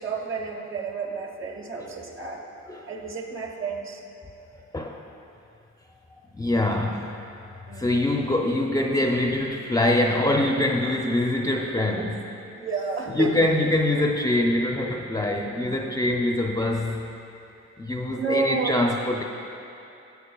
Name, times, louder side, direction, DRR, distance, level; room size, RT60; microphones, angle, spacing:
voice 1, 0.0-2.4 2.9-4.0 7.7-8.1 12.5-13.4 18.1-18.7, right 4 dB, 45° right, 2 dB, 1.0 m, -30 dB
voice 2, 6.3-7.1 7.8-12.2 13.1-17.1 17.8-19.2, left 1 dB, 10° left, 1 dB, 0.4 m, -24 dB
11.5 x 8.0 x 2.2 m, 2.8 s
cardioid pair, 90°, 30 cm